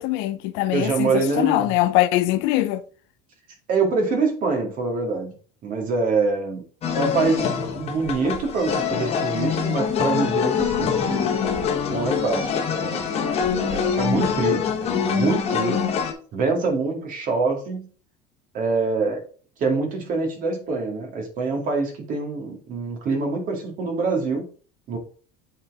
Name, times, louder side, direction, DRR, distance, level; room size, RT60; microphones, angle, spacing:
voice 1, 0.0-2.8, left 16 dB, 60° left, 0.6 m, -22 dB
voice 2, 0.7-1.7 3.7-5.3 5.6-6.6 7.0-7.5 7.7-11.3 11.9-13.1 13.7-15.8 16.3-17.9 18.5-19.2 19.6-24.4 24.9-25.0, right 4 dB, 40° right, 2.3 m, -25 dB
sound 1, 6.8-16.1, left 7 dB, 30° left, 1.2 m, -24 dB
7.9 x 4.4 x 3.6 m
cardioid pair, 155°, 21 cm